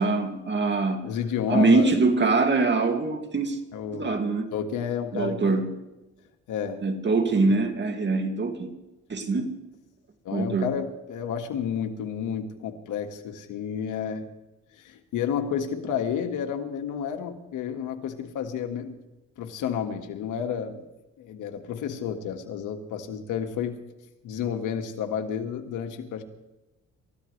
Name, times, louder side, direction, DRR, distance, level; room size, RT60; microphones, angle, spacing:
voice 1, 0.0-1.1 1.5-3.6 3.9-4.5 5.1-5.7 6.8-8.7 9.1-9.5 10.3-10.7, right 3 dB, 35° right, 5 dB, 2.4 m, -23 dB
voice 2, 1.0-1.9 3.7-4.2 4.5-5.6 6.5-6.8 7.3-7.5 8.1-8.2 10.3-14.3 14.7-19.0 19.4-20.8 21.2-23.8 24.2-26.2, left 8 dB, 90° left, 5 dB, 1.9 m, -31 dB
29.0 x 14.5 x 3.3 m, 1.0 s
cardioid pair, 90°, 30 cm